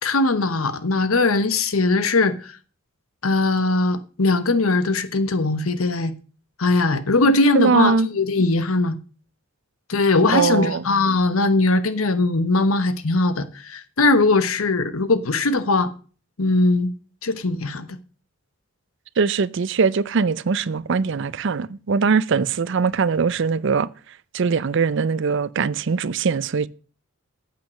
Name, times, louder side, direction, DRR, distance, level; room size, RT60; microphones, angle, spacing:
voice 1, 0.0-2.5 3.2-6.1 6.6-9.0 9.9-15.9 16.4-16.9 17.2-18.0, left 2 dB, 90° left, 1.1 m, -20 dB
voice 2, 7.6-8.1 10.3-10.8 19.2-23.9 24.3-26.7, right 5 dB, 60° right, 0.5 m, -21 dB
8.7 x 7.5 x 6.4 m
head